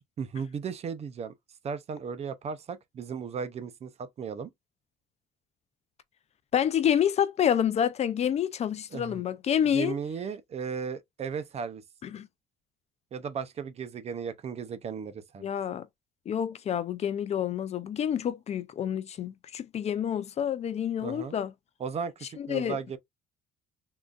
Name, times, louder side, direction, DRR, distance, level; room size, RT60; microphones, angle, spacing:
voice 1, 0.2-1.3 1.6-4.5 8.9-9.2 9.7-11.8 13.1-15.5 21.0-21.4 21.8-23.0, right 6 dB, 40° right, 0.5 m, -35 dB
voice 2, 6.5-10.0 12.0-12.3 15.4-15.9 16.3-21.5 22.4-22.8, left 9 dB, 40° left, 0.4 m, -28 dB
3.7 x 2.4 x 2.3 m
cardioid pair, 110°, 17 cm